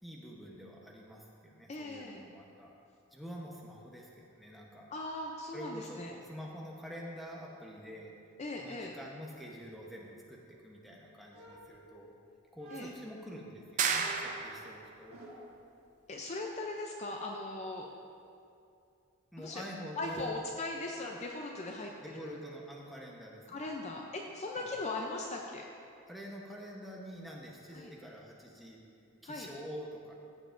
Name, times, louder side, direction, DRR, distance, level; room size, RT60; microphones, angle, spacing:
voice 1, 0.0-2.7 3.1-4.9 5.5-8.1 8.6-12.1 12.5-15.2 19.3-20.4 22.0-23.7 24.6-24.7 26.1-28.8 29.2-30.1, equal, ahead, -3 dB, 0.8 m, -47 dB
voice 2, 1.7-2.2 4.9-6.1 8.4-8.9 12.7-12.9 16.1-17.9 19.4-19.6 20.0-22.4 23.5-25.7 27.7-27.9 29.2-29.5, left 2 dB, 30° left, 1 dB, 0.4 m, -39 dB
sound 1, 11.3-12.2 12.6-13.2 13.9-15.6, right 2 dB, 85° right, 1.4 m, -52 dB
sound 2, 13.8-14.9, right 6 dB, 35° right, 0.4 m, -32 dB
14.0 x 7.3 x 2.5 m, 2.5 s
head